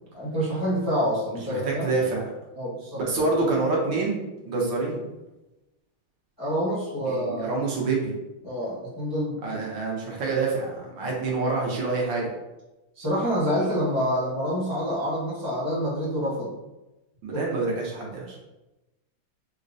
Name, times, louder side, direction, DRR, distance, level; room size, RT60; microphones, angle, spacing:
voice 1, 0.1-1.9 2.6-3.0 6.4-7.5 8.4-9.4 13.0-16.6 17.3-17.4, equal, 20° left, -9 dB, 0.5 m, -27 dB
voice 2, 1.5-2.2 3.0-5.0 7.1-8.1 9.4-12.3 17.2-18.4, right 3 dB, 70° right, -3 dB, 1.4 m, -27 dB
4.7 x 2.1 x 2.6 m, 1.0 s
omnidirectional pair, 2.2 m